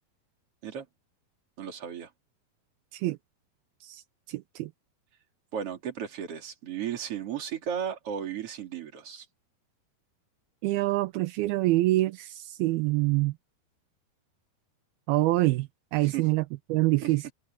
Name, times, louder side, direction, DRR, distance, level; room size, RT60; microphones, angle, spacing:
voice 1, 1.6-2.1 5.5-9.2 16.0-16.3 17.0-17.3, right 8 dB, 40° right, 3.1 m, -35 dB
voice 2, 4.3-4.7 10.6-13.3 15.1-16.4 16.7-17.3, right 18 dB, 85° right, 2.4 m, -25 dB
omnidirectional pair, 4.8 m